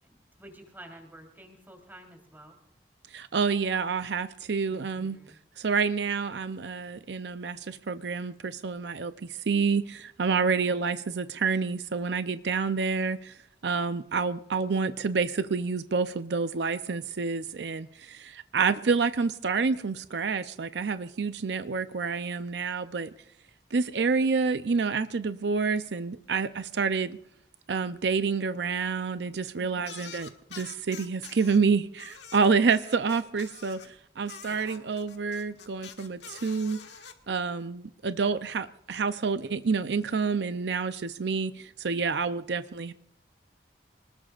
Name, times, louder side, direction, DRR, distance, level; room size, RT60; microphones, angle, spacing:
voice 1, 0.0-2.6 4.7-5.4 10.4-10.8 34.5-34.9, right 1 dB, 10° right, 3.7 m, -51 dB
voice 2, 3.1-5.2 5.6-13.4 13.6-23.1 23.7-27.2 27.7-36.8 37.3-42.9, right 5 dB, 75° right, 0.6 m, -28 dB
sound 1, 29.8-31.6 32.0-33.9 34.3-37.1, left 7 dB, 75° left, 1.7 m, -46 dB
25.5 x 20.0 x 2.5 m
head